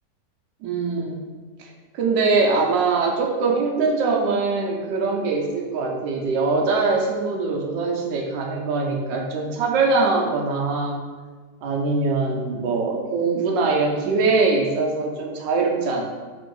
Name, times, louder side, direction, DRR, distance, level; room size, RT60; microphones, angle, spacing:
voice 1, 0.6-1.2 1.6-1.7 1.9-11.0 11.6-16.0, right 3 dB, 85° right, 0 dB, 1.4 m, -22 dB
3.5 x 2.6 x 4.5 m, 1.4 s
omnidirectional pair, 1.9 m